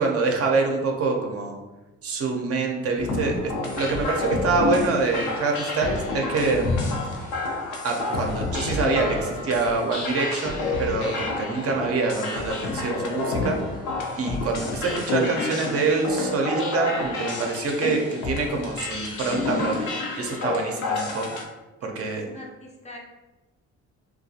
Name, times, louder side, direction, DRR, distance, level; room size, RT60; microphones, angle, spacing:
voice 1, 0.0-1.6 2.0-6.9 7.8-13.6 14.2-21.3 21.8-22.3, right 3 dB, 50° right, 1 dB, 0.5 m, -25 dB
sound 1, 3.0-21.4, left 3 dB, 80° left, 0.6 m, -29 dB
voice 2, 22.2-23.0, left 1 dB, 25° left, -1 dB, 0.4 m, -42 dB
2.3 x 2.2 x 2.6 m, 1.1 s
cardioid pair, 90°, 30 cm